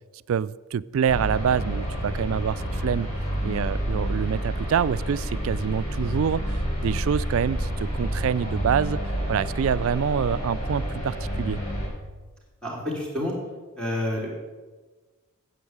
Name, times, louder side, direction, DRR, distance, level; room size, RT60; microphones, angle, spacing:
voice 1, 0.3-3.1 3.4-9.0 9.3-11.6, right 7 dB, 65° right, 19 dB, 0.3 m, -26 dB
sound 1, 1.0-11.9, equal, 40° left, 4.1 m, -29 dB
voice 2, 12.6-13.3 13.8-14.3, left 1 dB, 5° left, -5 dB, 3.3 m, -28 dB
9.6 x 8.0 x 8.0 m, 1.3 s
head